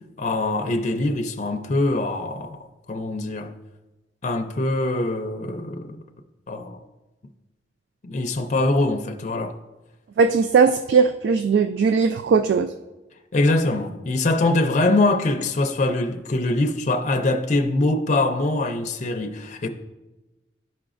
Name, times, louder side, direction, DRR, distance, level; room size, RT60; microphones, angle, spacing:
voice 1, 0.2-3.5 4.2-6.0 6.5-6.8 8.0-9.5 13.3-19.7, left 2 dB, 40° left, 0.4 m, -23 dB
voice 2, 10.2-12.7, right 5 dB, 75° right, 0.3 m, -19 dB
12.0 x 4.9 x 2.4 m
head